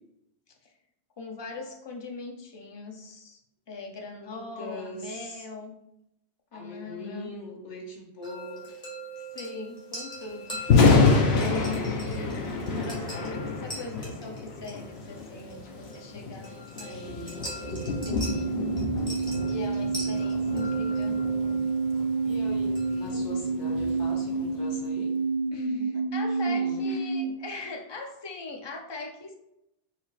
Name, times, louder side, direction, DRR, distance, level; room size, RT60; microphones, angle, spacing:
voice 1, 1.2-3.4 3.7-5.7 6.5-7.3 9.2-10.6 11.4-18.6 19.5-21.2 25.5-29.4, left 3 dB, 45° left, 2 dB, 0.3 m, -40 dB
voice 2, 4.2-5.4 6.5-8.6 16.8-17.5 22.2-25.1 26.2-27.3, left 2 dB, 85° left, -2 dB, 1.6 m, -41 dB
sound 1, 8.2-23.1, right 1 dB, 5° left, 1.4 m, -43 dB
Thunder, 10.5-24.7, left 4 dB, 65° left, 1.0 m, -28 dB
sound 2, 17.7-27.3, right 4 dB, 60° right, 1.9 m, -29 dB
4.4 x 4.3 x 2.4 m, 0.83 s
omnidirectional pair, 1.2 m